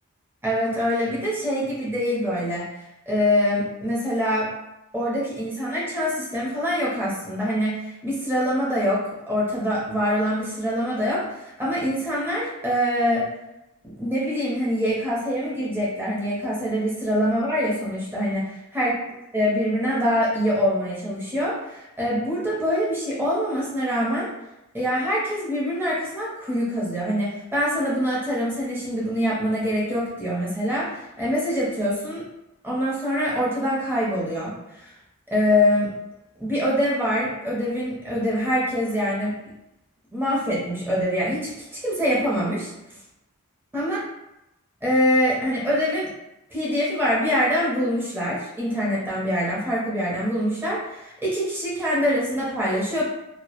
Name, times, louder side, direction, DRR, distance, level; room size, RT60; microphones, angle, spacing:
voice 1, 0.4-2.7 3.1-4.5 4.9-13.3 14.0-18.9 19.3-24.3 24.7-32.2 32.6-34.9 35.3-35.9 36.4-39.3 40.1-42.7 43.7-44.0 44.8-46.1 46.5-53.0, equal, 10° right, -7 dB, 0.6 m, -24 dB
2.2 x 2.0 x 2.8 m, 0.91 s
head